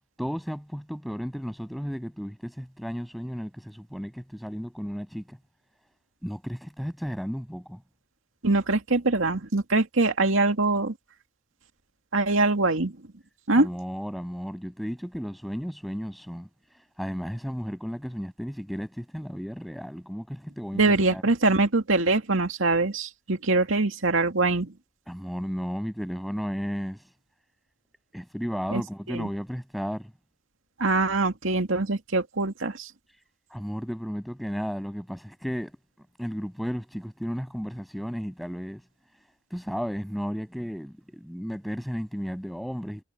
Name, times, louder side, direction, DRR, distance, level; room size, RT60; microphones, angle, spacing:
voice 1, 0.2-5.4 6.2-7.8 13.5-21.2 25.1-27.1 28.1-30.1 33.1-33.2 33.5-35.8 36.2-38.8 39.5-43.0, equal, ahead, 7.8 m, -34 dB
voice 2, 8.4-10.9 12.1-12.9 13.5-13.7 20.7-24.7 28.7-28.8 29.1-29.3 30.8-32.9, right 3 dB, 90° right, 2.3 m, -23 dB
head